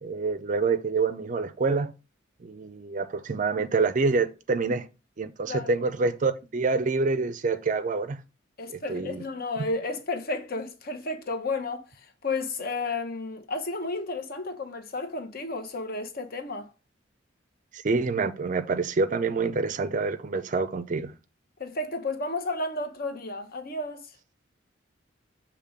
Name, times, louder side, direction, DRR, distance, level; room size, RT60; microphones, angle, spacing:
voice 1, 0.0-1.9 2.4-4.8 5.2-8.2 8.7-9.2 17.7-21.1, right 4 dB, 40° right, 0.4 m, -27 dB
voice 2, 8.6-16.7 21.6-24.1, left 2 dB, 50° left, 0.9 m, -32 dB
6.6 x 3.0 x 5.0 m
head